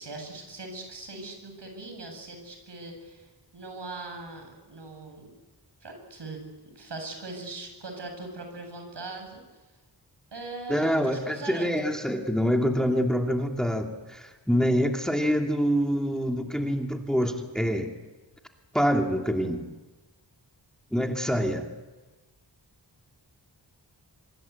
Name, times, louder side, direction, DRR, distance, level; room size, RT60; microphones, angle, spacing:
voice 1, 0.0-5.3 5.8-6.4 6.7-9.4 10.3-11.9, right 2 dB, 70° right, 4 dB, 7.9 m, -40 dB
voice 2, 10.7-18.0 18.7-19.7 20.9-21.6, equal, ahead, 2 dB, 2.7 m, -26 dB
25.0 x 24.5 x 8.4 m, 1.2 s
cardioid pair, 60°, 44 cm